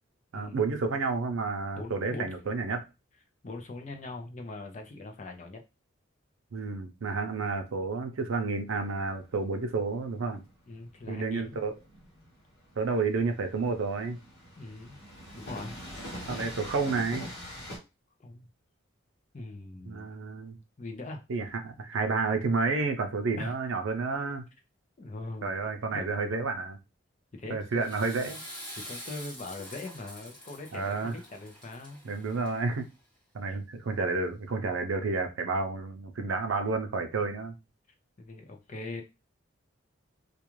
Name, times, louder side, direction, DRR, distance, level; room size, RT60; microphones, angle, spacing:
voice 1, 0.3-2.9 6.5-10.4 11.1-11.8 12.8-14.2 16.3-17.3 19.9-20.6 21.3-24.5 25.4-26.8 27.5-28.4 30.7-31.1 32.0-32.9 33.3-37.5, right 4 dB, 85° right, 0.5 m, -30 dB
voice 2, 1.7-2.3 3.4-5.6 10.7-11.6 14.6-15.0 15.3-15.8 18.2-18.5 19.3-20.1 20.8-21.2 23.4-23.5 25.0-25.5 25.9-26.0 27.3-27.9 28.8-32.0 33.5-33.6 38.2-39.0, left 2 dB, 35° left, 0.5 m, -41 dB
Train, 8.7-17.8, equal, 55° left, 1.2 m, -44 dB
Water / Toilet flush, 27.6-32.8, equal, 5° left, 0.9 m, -46 dB
2.4 x 2.3 x 3.0 m
head